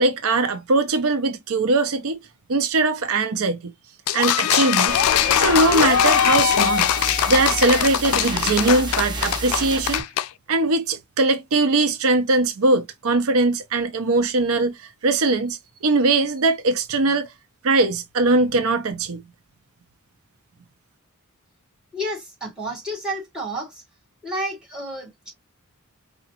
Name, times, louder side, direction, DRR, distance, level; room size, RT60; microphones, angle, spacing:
voice 1, 0.0-2.2 2.5-3.7 4.1-5.0 5.4-6.9 7.3-10.0 10.5-14.8 15.0-15.6 15.8-17.3 17.6-19.2, right 2 dB, 70° right, 0.6 m, -21 dB
sound 1, 4.1-10.3, left 10 dB, 80° left, 0.4 m, -21 dB
sound 2, 4.9-10.0, right 2 dB, 20° right, 1.4 m, -30 dB
voice 2, 21.9-23.8 24.2-25.3, right 1 dB, 5° right, 2.0 m, -30 dB
4.9 x 2.4 x 2.8 m
head